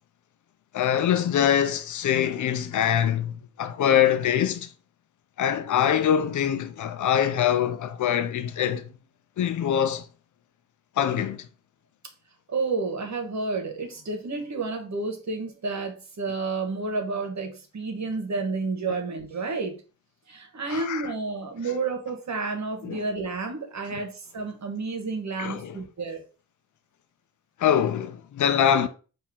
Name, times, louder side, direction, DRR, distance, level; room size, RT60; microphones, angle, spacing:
voice 1, 0.7-4.7 5.4-8.9 9.4-10.0 11.0-11.5 20.7-21.1 22.8-23.0 23.9-24.0 25.4-25.8 27.6-28.9, left 9 dB, 60° left, 0.6 m, -24 dB
voice 2, 12.5-19.8 20.3-26.2, right 3 dB, 55° right, 1.4 m, -30 dB
4.5 x 2.8 x 3.8 m
supercardioid pair, 55°, 34 cm